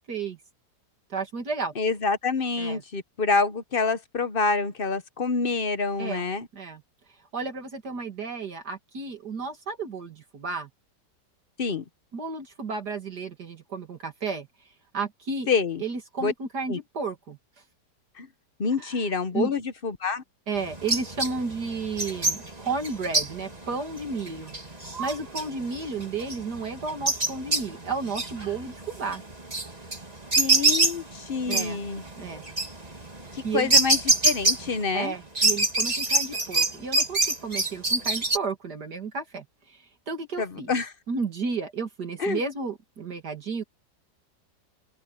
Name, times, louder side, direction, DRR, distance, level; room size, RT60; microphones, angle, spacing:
voice 1, 0.1-0.4 1.1-1.7 2.6-2.8 6.0-6.2 6.5-6.8 7.3-10.7 12.1-14.5 14.9-15.5 15.8-17.4 18.8-19.0 19.3-19.5 20.5-24.5 25.0-29.2 31.5-31.8 32.2-32.4 33.4-33.7 34.9-40.7 41.1-43.6, right 4 dB, 65° right, 2.9 m, -32 dB
voice 2, 1.8-6.5 11.6-11.8 15.5-15.8 16.2-16.3 16.7-16.8 18.2-18.3 18.6-20.2 30.3-32.0 33.3-35.1 40.4-40.9 42.2-42.4, left 4 dB, 40° left, 0.8 m, -27 dB
sound 1, 20.6-35.0 35.4-38.4, right 2 dB, 20° right, 2.7 m, -26 dB
open air
omnidirectional pair, 1.9 m